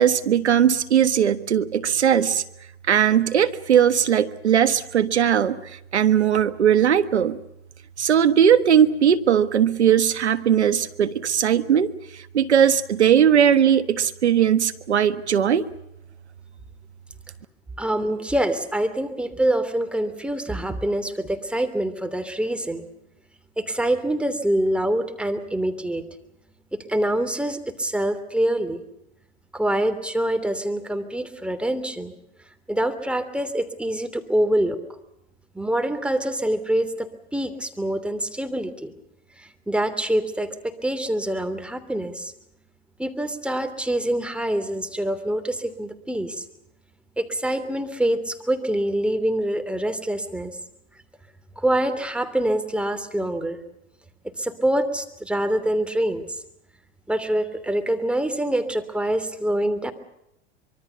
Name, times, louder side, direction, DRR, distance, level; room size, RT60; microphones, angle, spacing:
voice 1, 0.0-2.4 2.9-5.6 5.9-7.4 8.0-15.6, right 9 dB, 85° right, 12 dB, 1.5 m, -19 dB
voice 2, 17.8-22.9 23.6-26.0 26.7-28.8 29.5-32.1 32.7-34.8 35.5-38.9 39.4-42.3 43.0-46.4 47.2-50.6 51.6-53.6 54.4-56.4 57.1-59.9, right 1 dB, 5° right, 7 dB, 3.0 m, -25 dB
25.0 x 23.5 x 7.0 m, 0.82 s
hypercardioid pair, 95°, 33 cm